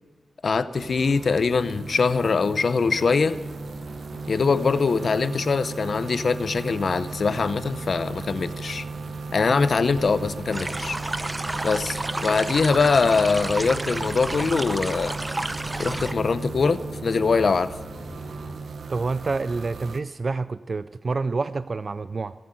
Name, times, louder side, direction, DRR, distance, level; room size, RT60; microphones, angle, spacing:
voice 1, 0.4-3.4 4.3-8.9 9.3-11.0 11.6-15.2 15.8-17.7, left 4 dB, 65° left, 14 dB, 0.7 m, -23 dB
sound 1, 0.7-20.0, right 4 dB, 80° right, 0.9 m, -36 dB
sound 2, 3.0-18.5, equal, 10° left, 3.3 m, -43 dB
sound 3, 10.5-16.1, right 2 dB, 25° right, 0.7 m, -31 dB
voice 2, 18.9-22.3, right 3 dB, 55° right, 14 dB, 0.3 m, -28 dB
18.0 x 7.7 x 7.9 m, 1.3 s
cardioid pair, 60°, 0 cm